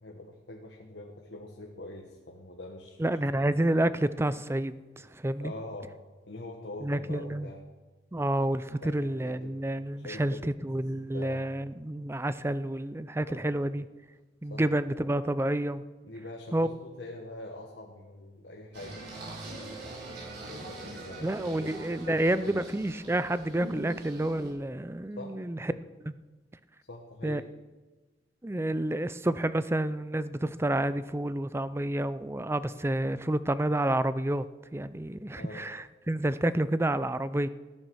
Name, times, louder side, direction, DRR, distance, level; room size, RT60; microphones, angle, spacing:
voice 1, 0.0-3.0 3.4-3.6 5.4-5.9 6.3-7.6 8.8-9.6 10.0-10.5 11.1-11.5 13.3-13.4 14.5-14.6 16.0-19.9 20.6-22.6 25.2-25.4 25.7-25.8 26.9-27.5 35.4-35.7, left 2 dB, 80° left, 1 dB, 1.5 m, -44 dB
voice 2, 3.0-5.5 6.8-7.5 8.1-13.9 14.4-15.8 16.5-16.7 21.2-25.7 26.0-26.1 27.2-27.4 28.4-34.5 34.7-37.5, right 1 dB, 15° right, 15 dB, 0.5 m, -29 dB
Singing, 18.7-24.5, right 2 dB, 65° right, 5.3 m, -43 dB
16.0 x 9.8 x 6.3 m, 1.3 s
head